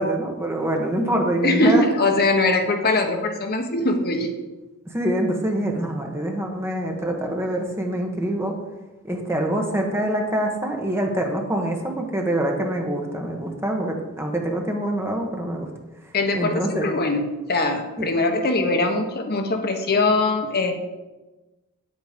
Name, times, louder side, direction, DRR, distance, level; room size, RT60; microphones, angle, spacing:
voice 1, 0.0-1.8 4.9-8.5 9.0-15.7 16.3-16.9 18.0-18.1, right 1 dB, 10° right, 1 dB, 1.3 m, -25 dB
voice 2, 1.4-4.3 16.1-20.8, left 2 dB, 45° left, 4 dB, 1.1 m, -22 dB
8.9 x 8.4 x 5.1 m, 1.1 s
head